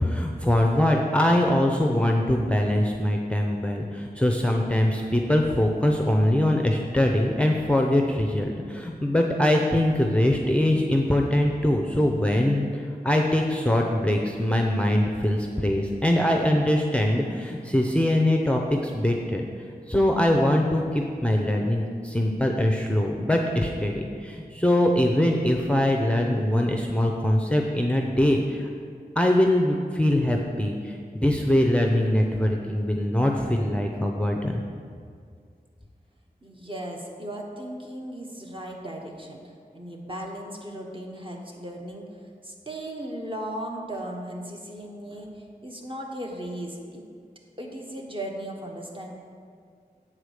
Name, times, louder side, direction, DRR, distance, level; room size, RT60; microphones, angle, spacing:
voice 1, 0.0-19.5 19.9-28.7 29.2-34.6, left 1 dB, 5° left, 1 dB, 0.6 m, -23 dB
voice 2, 36.4-39.4 39.7-42.2 42.4-47.0 47.6-49.1, right 1 dB, 35° right, -1 dB, 1.2 m, -36 dB
7.5 x 4.9 x 6.4 m, 2.1 s
wide cardioid pair, 60°, 16 cm